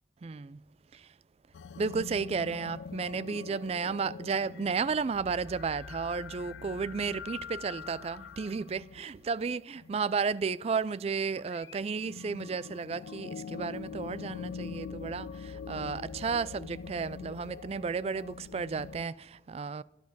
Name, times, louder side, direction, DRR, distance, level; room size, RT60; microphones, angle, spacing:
voice 1, 0.2-0.6 0.9-1.1 1.8-19.8, right 5 dB, 35° right, 0.3 m, -33 dB
sound 1, 1.5-10.2 11.2-19.1, left 6 dB, 80° left, 0.3 m, -44 dB
11.5 x 10.5 x 6.0 m
head